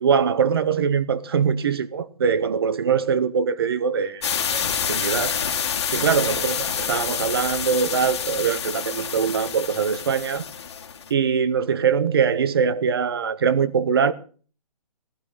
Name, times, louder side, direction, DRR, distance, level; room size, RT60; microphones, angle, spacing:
voice 1, 0.0-5.4 5.9-10.4 11.1-14.1, right 6 dB, 40° right, 0.8 m, -22 dB
sound 1, 4.2-11.1, left 7 dB, 45° left, 1.7 m, -27 dB
15.5 x 14.0 x 4.0 m
hypercardioid pair, 170°, 20 cm